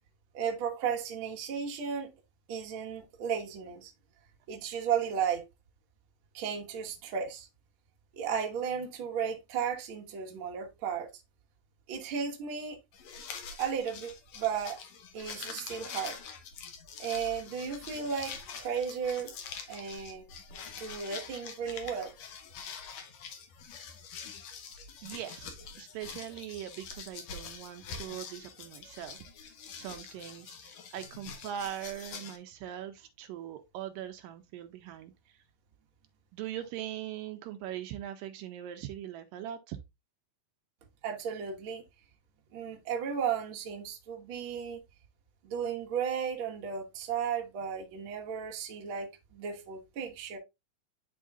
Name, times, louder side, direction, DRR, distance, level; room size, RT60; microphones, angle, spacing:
voice 1, 0.3-2.1 2.5-3.9 4.5-5.4 6.3-7.5 8.1-11.1 11.9-12.8 13.6-14.8 15.1-16.2 17.0-19.3 19.7-20.2 20.8-22.1 41.0-41.8 42.5-44.8 45.4-50.4, right 7 dB, 55° right, 1.5 m, -34 dB
sound 1, 12.9-32.4, left 6 dB, 65° left, 1.8 m, -45 dB
voice 2, 25.0-35.4 36.3-39.8, right 11 dB, 80° right, 2.2 m, -41 dB
11.0 x 3.7 x 2.4 m
omnidirectional pair, 4.1 m